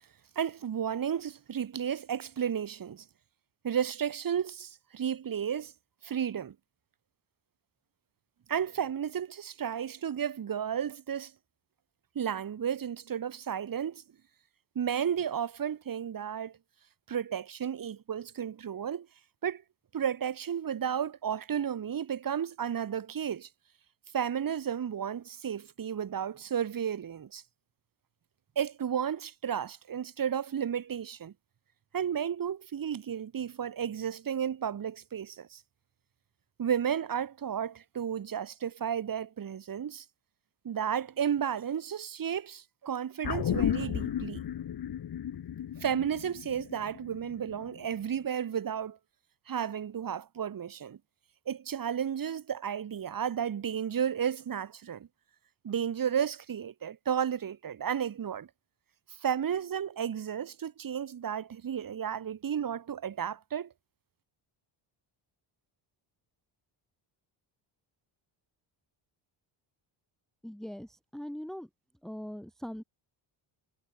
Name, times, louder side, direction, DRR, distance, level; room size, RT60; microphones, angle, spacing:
voice 1, 0.3-3.0 3.6-5.7 6.0-6.5 8.5-11.3 12.1-14.0 14.7-16.5 17.1-19.1 19.4-19.6 19.9-23.5 24.1-27.4 28.5-31.3 31.9-35.6 36.6-40.0 40.6-44.4 45.8-49.0 49.5-51.0 51.5-55.1 55.6-58.5 59.2-63.7, right 8 dB, 45° right, 5.0 m, -33 dB
sound 1, 43.2-47.8 48.2-48.3, left 10 dB, 50° left, 3.5 m, -34 dB
voice 2, 70.4-71.7 72.0-72.8, equal, ahead, 1.2 m, -41 dB
cardioid pair, 165°, 48 cm